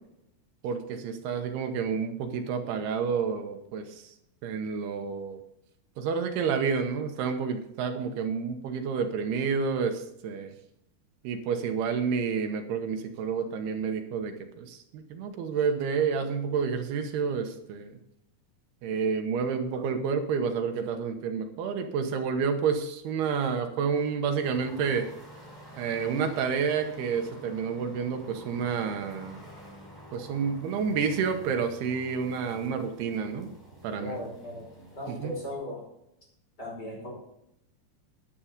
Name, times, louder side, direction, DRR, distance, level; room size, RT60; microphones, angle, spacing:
voice 1, 0.6-4.1 4.4-5.4 6.0-10.5 11.2-17.9 18.8-25.1 25.8-29.4 30.1-33.5 33.8-34.2 35.1-35.3, right 6 dB, 80° right, 6 dB, 3.1 m, -29 dB
sound 1, 24.4-35.5, right 1 dB, 5° right, 4.7 m, -49 dB
voice 2, 34.0-34.7 34.9-35.8 36.6-37.1, left 1 dB, 25° left, -3 dB, 5.7 m, -37 dB
11.0 x 10.0 x 5.2 m, 0.79 s
omnidirectional pair, 4.6 m